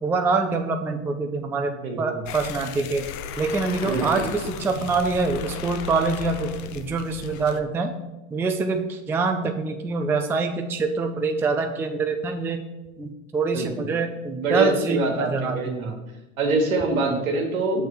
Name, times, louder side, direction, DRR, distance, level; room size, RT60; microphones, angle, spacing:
voice 1, 0.0-3.0 3.4-7.9 8.3-12.6 13.0-15.9 17.1-17.2, right 4 dB, 5° right, 5 dB, 0.3 m, -25 dB
voice 2, 1.7-2.2 3.8-4.3 13.5-13.9 14.4-16.0 16.4-17.9, right 2 dB, 85° right, 2 dB, 1.5 m, -25 dB
sound 1, 2.3-7.6, left 6 dB, 45° left, 0.6 m, -35 dB
6.6 x 3.4 x 6.1 m, 1.0 s
hypercardioid pair, 95°, 41 cm